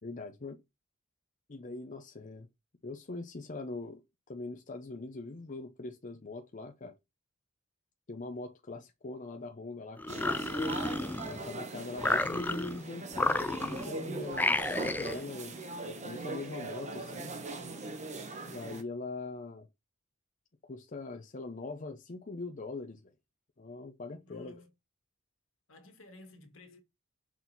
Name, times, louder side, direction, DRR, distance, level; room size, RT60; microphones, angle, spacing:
voice 1, 0.0-0.6 1.5-2.5 2.8-4.0 4.3-7.0 8.1-10.5 11.2-15.6 15.8-17.3 18.4-19.7 20.6-23.1 23.6-24.6, left 3 dB, 40° left, 0.7 m, -42 dB
sound 1, 10.0-11.5 12.0-12.8 13.1-13.9 14.3-15.2, left 2 dB, 10° left, 0.3 m, -31 dB
sound 2, 10.1-18.8, right 3 dB, 35° right, 1.1 m, -41 dB
voice 2, 24.2-24.7 25.7-26.8, left 3 dB, 70° left, 1.7 m, -53 dB
6.1 x 4.0 x 4.0 m
head